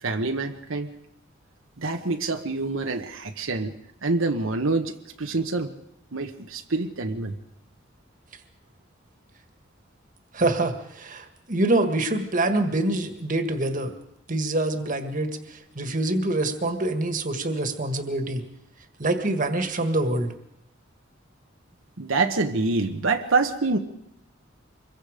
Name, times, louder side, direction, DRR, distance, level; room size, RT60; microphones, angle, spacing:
voice 1, 0.0-0.9 1.8-3.7 4.0-5.7 6.1-7.3 22.0-23.8, right 3 dB, 80° right, 5 dB, 1.2 m, -26 dB
voice 2, 10.3-13.9 14.3-18.4 19.0-20.3, right 2 dB, 40° right, 7 dB, 1.8 m, -25 dB
25.5 x 22.5 x 5.1 m, 0.83 s
head